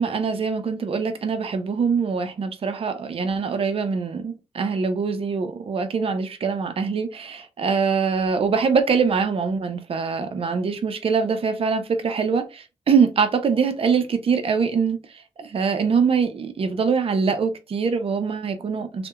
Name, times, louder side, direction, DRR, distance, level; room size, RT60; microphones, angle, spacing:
voice 1, 0.0-15.0 15.4-19.1, right 5 dB, 50° right, 0.4 m, -23 dB
2.7 x 2.1 x 2.3 m
wide cardioid pair, 125°, 12 cm